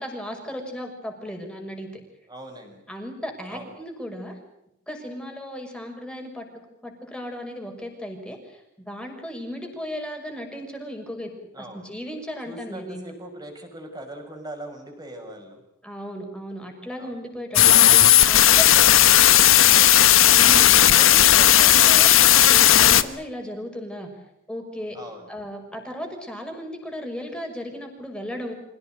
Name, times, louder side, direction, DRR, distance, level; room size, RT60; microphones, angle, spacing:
voice 1, 0.0-1.9 2.9-4.4 4.9-11.3 11.6-13.0 15.8-17.9 18.3-18.4 20.3-24.1 24.5-25.0 25.3-28.5, equal, 5° left, 3 dB, 6.2 m, -36 dB
voice 2, 2.3-2.8 3.5-3.7 11.5-11.9 12.4-15.6 16.9-17.1 18.3-19.9 24.9-25.3, right 1 dB, 20° right, 4 dB, 6.2 m, -41 dB
sound 1, 17.6-23.0, left 12 dB, 75° left, 1.3 m, -14 dB
26.5 x 18.0 x 9.3 m, 0.83 s
head